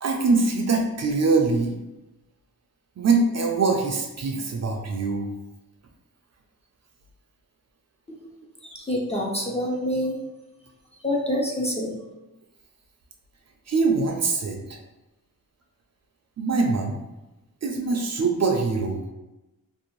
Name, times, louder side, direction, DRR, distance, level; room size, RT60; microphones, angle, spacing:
voice 1, 0.0-1.7 3.0-5.3 13.7-14.8 16.4-17.0 17.6-19.0, right 4 dB, 45° right, 1 dB, 0.4 m, -23 dB
voice 2, 8.6-10.2 11.0-12.0, left 1 dB, 20° left, -2 dB, 0.4 m, -26 dB
2.6 x 2.0 x 3.0 m, 1.0 s
wide cardioid pair, 100°, 36 cm